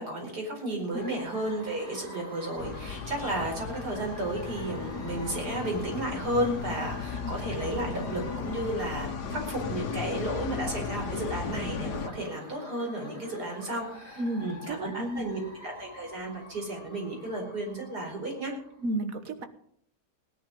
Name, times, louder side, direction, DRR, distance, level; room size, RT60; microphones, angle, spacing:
voice 1, 0.0-18.5, right 1 dB, 80° right, 1 dB, 5.4 m, -33 dB
sound 1, 0.9-18.9, equal, 10° right, 6.8 m, -47 dB
sound 2, 2.6-12.1, left 6 dB, 90° left, 1.8 m, -36 dB
voice 2, 14.2-15.3 18.8-19.5, right 1 dB, 60° right, 9 dB, 1.7 m, -32 dB
18.0 x 10.5 x 5.5 m, 0.65 s
omnidirectional pair, 1.7 m